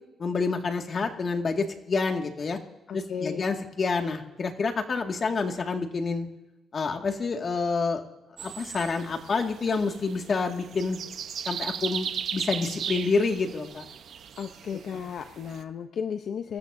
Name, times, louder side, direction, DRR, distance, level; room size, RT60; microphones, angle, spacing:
voice 1, 0.2-2.6 2.9-6.3 6.7-8.0 8.4-11.0 11.5-13.9, left 4 dB, 45° left, 3 dB, 2.1 m, -28 dB
voice 2, 2.9-3.5 14.4-16.6, left 7 dB, 65° left, 7 dB, 0.8 m, -34 dB
sound 1, 8.4-15.6, right 8 dB, 65° right, 0.9 m, -37 dB
26.0 x 14.0 x 2.7 m, 1.0 s
cardioid pair, 90°, 0 cm